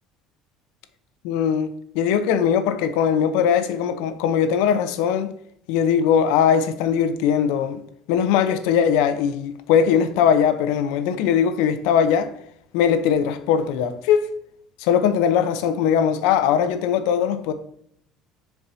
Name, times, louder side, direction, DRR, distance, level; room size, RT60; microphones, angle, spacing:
voice 1, 1.2-5.3 5.7-7.8 8.1-12.3 12.7-14.3 14.8-17.5, left 8 dB, 75° left, 0.8 m, -20 dB
10.5 x 4.8 x 2.8 m
cardioid pair, 160°, 0 cm